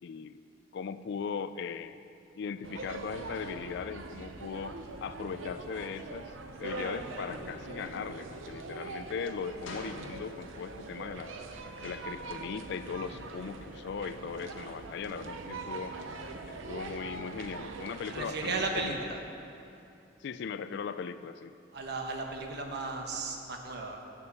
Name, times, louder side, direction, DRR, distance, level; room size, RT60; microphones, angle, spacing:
voice 1, 0.0-0.4 0.7-2.0 2.4-4.7 5.0-6.3 6.6-11.3 11.8-16.0 16.5-19.0 20.2-21.5, left 6 dB, 60° left, 12 dB, 0.3 m, -39 dB
sound 1, 1.6-1.7 2.1-3.7 4.1-8.2 8.5-8.7 9.1-10.5 11.2-19.8, left 1 dB, 85° left, 1.5 m, -54 dB
sound 2, 2.6-19.0, right 3 dB, 85° right, 0.7 m, -42 dB
voice 2, 18.1-19.2 21.7-24.0, right 3 dB, 60° right, 2 dB, 1.1 m, -35 dB
8.5 x 6.8 x 6.8 m, 2.6 s
head